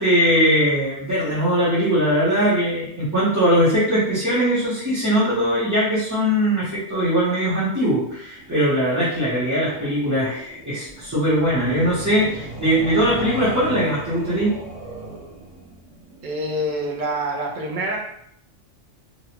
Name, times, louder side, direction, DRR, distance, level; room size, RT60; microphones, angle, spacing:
voice 1, 0.0-14.5, equal, 15° right, -13 dB, 0.8 m, -20 dB
sound 1, 8.3-17.3, right 1 dB, 75° right, 1.0 m, -38 dB
voice 2, 16.2-18.0, right 1 dB, 55° right, 1 dB, 0.6 m, -26 dB
2.7 x 2.3 x 2.9 m, 0.71 s
omnidirectional pair, 1.3 m